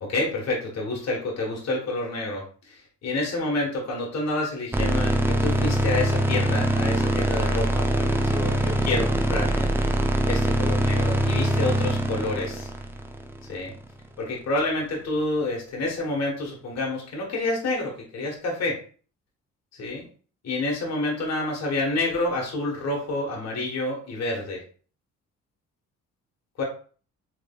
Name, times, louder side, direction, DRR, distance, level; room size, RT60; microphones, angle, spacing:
voice 1, 0.0-9.7 10.2-12.7 13.5-13.7 14.2-18.8 19.7-20.0 20.4-24.6 26.6-26.7, left 2 dB, 60° left, -1 dB, 1.2 m, -28 dB
sound 1, 4.7-13.9, right 1 dB, 10° right, 0.4 m, -23 dB
3.5 x 3.1 x 2.3 m, 0.41 s
cardioid pair, 90°, 30 cm